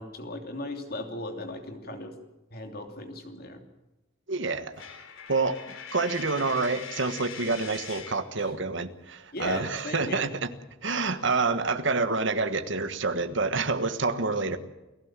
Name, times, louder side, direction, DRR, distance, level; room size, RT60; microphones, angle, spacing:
voice 1, 0.0-2.1 2.5-3.6 8.3-8.5 9.3-10.3, left 1 dB, 45° left, 5 dB, 3.0 m, -37 dB
voice 2, 4.3-4.7 5.3-10.5 10.8-14.6, right 3 dB, 60° right, 10 dB, 1.4 m, -28 dB
Coin (dropping), 4.8-8.3, left 7 dB, 70° left, 3.2 m, -42 dB
29.0 x 15.5 x 7.5 m, 1.0 s
head